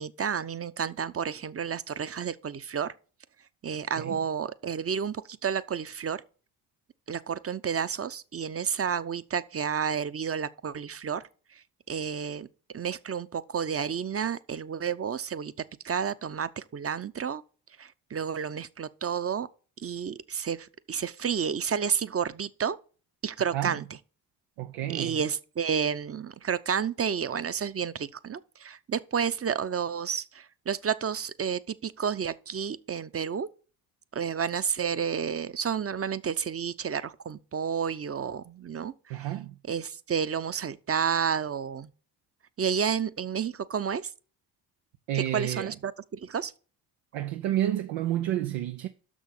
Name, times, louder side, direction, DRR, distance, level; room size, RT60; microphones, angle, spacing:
voice 1, 0.0-2.9 3.6-6.2 7.1-11.2 11.5-12.5 12.7-15.5 15.8-17.4 17.8-19.5 19.8-22.8 23.2-23.9 24.9-33.5 34.1-39.3 39.7-41.9 42.6-44.0 45.1-46.5, right 7 dB, 30° right, 0.7 m, -31 dB
voice 2, 24.6-25.2 39.1-39.5 45.1-45.7 47.1-48.9, right 13 dB, 90° right, 0.7 m, -30 dB
6.3 x 6.2 x 7.1 m
supercardioid pair, 55°, 45 cm